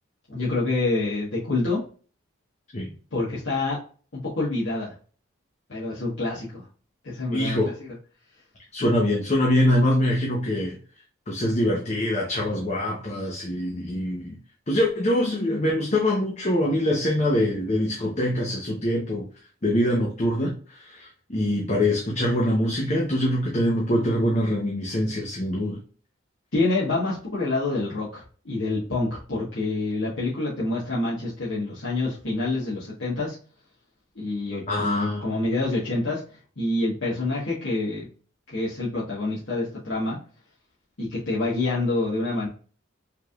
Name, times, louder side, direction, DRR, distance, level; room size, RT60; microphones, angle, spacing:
voice 1, 0.3-1.8 3.1-3.8 4.1-4.9 5.7-6.7 7.0-7.7 26.5-33.4 34.1-36.2 36.6-38.1 38.5-40.2 41.0-42.5, left 2 dB, 70° left, -8 dB, 1.4 m, -27 dB
voice 2, 7.3-7.7 8.7-10.8 11.3-14.4 14.7-19.2 19.6-25.8 34.7-35.2, left 1 dB, 35° left, -1 dB, 0.8 m, -24 dB
4.7 x 3.5 x 2.4 m, 0.41 s
head